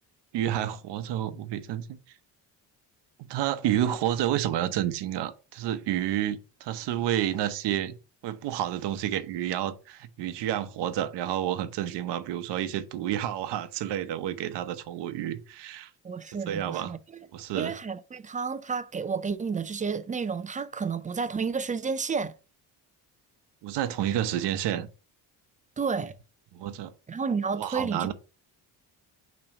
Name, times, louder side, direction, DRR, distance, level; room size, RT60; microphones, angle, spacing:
voice 1, 0.3-2.0 3.2-8.0 8.2-15.9 16.5-17.0 17.3-17.7 23.6-24.9 26.5-26.9 27.6-28.1, right 11 dB, 80° right, 0.9 m, -30 dB
voice 2, 16.0-17.0 17.5-22.3 25.8-26.2 27.1-28.1, right 5 dB, 20° right, 0.4 m, -31 dB
5.9 x 3.1 x 5.2 m
cardioid pair, 100°, 41 cm